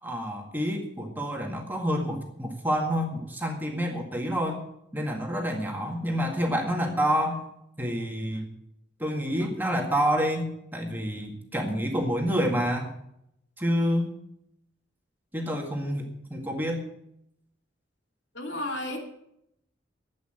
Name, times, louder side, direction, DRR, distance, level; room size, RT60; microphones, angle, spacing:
voice 1, 0.0-4.6 4.9-7.4 7.8-8.5 9.0-12.9 13.6-14.1 15.3-16.8, equal, 10° right, 1 dB, 1.9 m, -28 dB
voice 2, 18.3-19.0, left 1 dB, 65° left, 1 dB, 2.9 m, -32 dB
12.5 x 8.7 x 7.8 m, 0.78 s
head